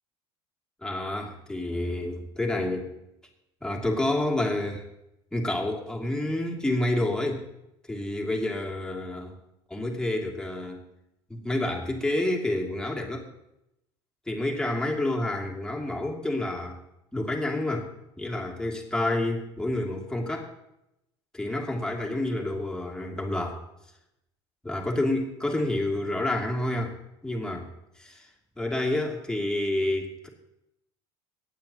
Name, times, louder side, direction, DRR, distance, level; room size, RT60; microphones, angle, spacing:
voice 1, 0.8-2.9 3.6-4.9 5.3-7.4 7.9-9.3 9.7-10.8 11.3-13.3 14.3-16.8 17.1-17.9 18.2-20.5 21.3-23.6 24.6-26.9 27.2-27.7 28.0-28.3 28.6-30.3, left 1 dB, 5° left, -1 dB, 2.7 m, -29 dB
25.0 x 9.2 x 2.9 m, 0.85 s
hypercardioid pair, 70°, 14 cm